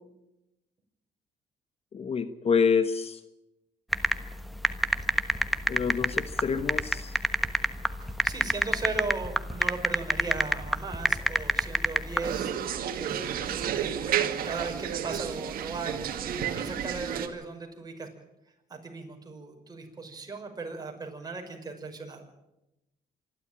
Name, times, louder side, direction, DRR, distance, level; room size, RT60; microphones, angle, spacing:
voice 1, 1.9-3.2 5.7-7.1, left 6 dB, 40° left, 11 dB, 1.2 m, -27 dB
sound 1, 3.9-12.3, equal, ahead, 1.3 m, -26 dB
voice 2, 8.0-18.1 18.7-22.3, right 3 dB, 25° right, 3 dB, 5.6 m, -37 dB
sound 2, 12.2-17.3, right 9 dB, 70° right, 2.0 m, -31 dB
26.0 x 12.0 x 8.8 m, 0.92 s
cardioid pair, 95°, 16 cm